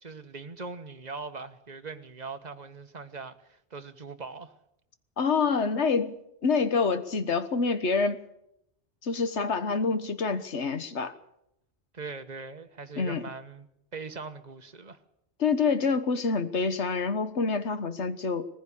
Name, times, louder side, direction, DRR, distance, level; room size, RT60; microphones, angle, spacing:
voice 1, 0.0-4.5 11.9-13.7 13.9-15.0, right 4 dB, 40° right, 1.4 m, -41 dB
voice 2, 5.2-8.2 9.0-11.1 13.0-13.2 15.4-18.5, left 4 dB, 85° left, 1.7 m, -27 dB
20.5 x 15.5 x 8.5 m
omnidirectional pair, 1.1 m